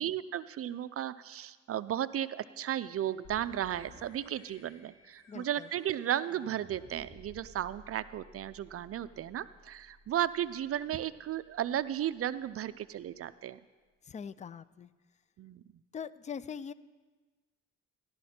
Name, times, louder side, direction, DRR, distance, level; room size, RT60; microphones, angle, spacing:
voice 1, 0.0-13.6 15.4-15.6, right 11 dB, 50° right, 15 dB, 0.4 m, -34 dB
sound 1, 3.2-12.8, left 2 dB, 70° left, 3.4 m, -58 dB
voice 2, 5.3-5.7 14.0-14.9 15.9-16.7, left 7 dB, 25° left, 17 dB, 0.4 m, -42 dB
15.0 x 11.5 x 4.3 m, 1.3 s
cardioid pair, 90°, 30 cm